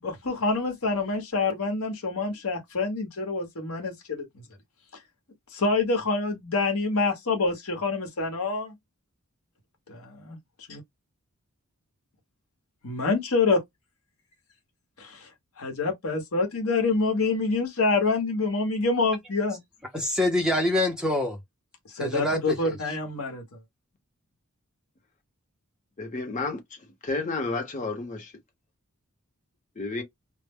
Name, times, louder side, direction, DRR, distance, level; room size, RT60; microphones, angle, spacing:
voice 1, 0.0-4.3 5.5-8.7 9.9-10.4 10.7-10.8 12.8-13.6 15.0-15.3 15.6-19.6 21.9-23.4, left 3 dB, 65° left, 0.9 m, -26 dB
voice 2, 19.9-21.4 22.0-22.7, left 1 dB, 5° right, 0.5 m, -25 dB
voice 3, 26.0-26.6 27.0-28.3 29.8-30.0, left 3 dB, 35° left, 0.8 m, -31 dB
2.0 x 2.0 x 3.4 m
head